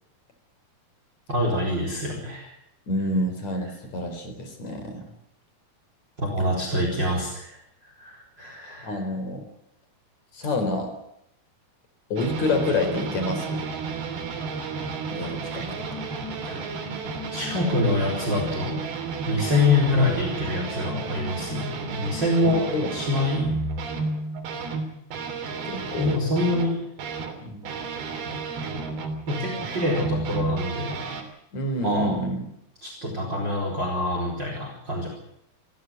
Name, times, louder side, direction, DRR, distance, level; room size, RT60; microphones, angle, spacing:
voice 1, 1.3-2.5 6.2-7.6 7.8-9.0 16.5-16.6 17.3-18.8 19.3-22.6 22.9-23.4 26.0-26.8 29.3-31.0 31.8-32.4 32.8-35.1, left 2 dB, 25° right, 1 dB, 5.0 m, -25 dB
voice 2, 2.9-5.0 8.8-9.5 10.3-10.9 12.1-13.6 15.1-15.7 22.4-22.9 23.4-23.6 25.6-26.2 27.4-27.6 29.6-29.7 31.5-32.4, left 2 dB, 45° left, 7 dB, 5.0 m, -28 dB
sound 1, 12.2-27.3 27.6-31.2, right 4 dB, 65° right, 5.0 m, -32 dB
28.5 x 14.5 x 7.7 m, 0.78 s
omnidirectional pair, 4.8 m